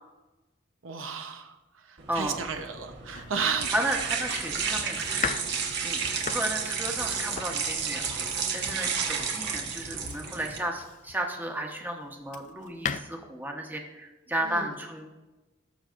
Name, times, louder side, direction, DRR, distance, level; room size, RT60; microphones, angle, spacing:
voice 1, 0.8-1.5 1.9-3.7 14.4-14.7, right 6 dB, 85° right, 6 dB, 0.9 m, -33 dB
sound 1, 2.0-10.6, right 6 dB, 60° right, 1.3 m, -32 dB
Domestic sounds home sounds, 3.1-11.3 11.9-13.0, left 7 dB, 40° left, 0.4 m, -39 dB
voice 2, 3.7-5.3 5.8-15.1, right 1 dB, 10° right, 2 dB, 1.1 m, -33 dB
18.5 x 6.3 x 2.6 m, 1.1 s
head